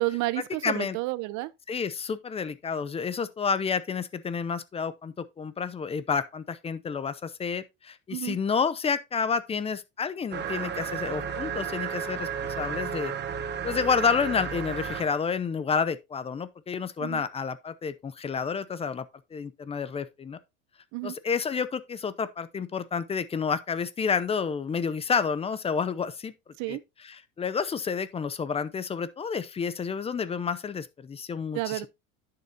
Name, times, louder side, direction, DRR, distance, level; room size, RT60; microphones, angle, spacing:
voice 1, 0.0-1.5 8.1-8.4 17.0-17.2 20.9-21.2 26.6-26.8 31.5-31.9, right 19 dB, 60° right, 0.8 m, -30 dB
voice 2, 0.6-1.0 1.7-12.3 12.6-13.1 13.6-19.0 19.3-20.4 21.0-26.3 26.7-26.8 27.0-31.9, left 6 dB, 20° left, 0.6 m, -30 dB
sound 1, 10.3-15.2, right 7 dB, 30° right, 1.1 m, -33 dB
10.5 x 6.7 x 2.8 m
cardioid pair, 145°, 33 cm